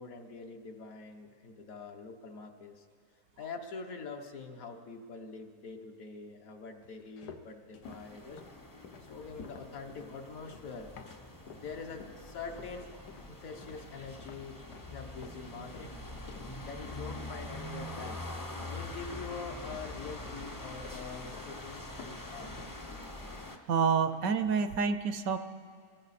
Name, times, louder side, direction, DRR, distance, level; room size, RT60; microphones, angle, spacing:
voice 1, 0.0-2.9 3.4-8.4 9.1-10.9 11.5-12.9 13.3-14.6 14.9-15.9 16.6-18.3 18.7-22.5, left 4 dB, 60° left, 4 dB, 1.4 m, -44 dB
sound 1, 6.8-11.7 12.0-12.8 13.1-19.3 19.6-20.5 20.8-21.6 21.8-23.7 24.0-24.4, left 6 dB, 90° left, 1.4 m, -52 dB
sound 2, 7.8-23.6, left 1 dB, 25° left, 0.5 m, -44 dB
voice 2, 23.7-25.4, right 6 dB, 70° right, 11 dB, 0.9 m, -28 dB
22.5 x 15.0 x 4.2 m, 2.3 s
omnidirectional pair, 1.7 m